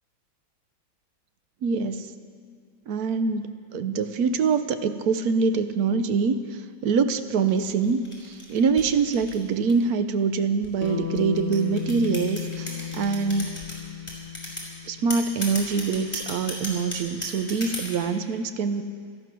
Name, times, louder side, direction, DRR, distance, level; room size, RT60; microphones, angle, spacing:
voice 1, 1.6-2.1 2.9-13.5 14.9-18.8, right 5 dB, 65° right, 9 dB, 1.1 m, -25 dB
sound 1, 7.5-9.9 10.6-13.8 14.1-14.7 15.1-18.1, left 1 dB, 15° left, 3.7 m, -35 dB
Bass guitar, 10.8-15.2, left 8 dB, 40° left, 3.7 m, -34 dB
17.0 x 13.0 x 6.1 m, 2.1 s
omnidirectional pair, 2.0 m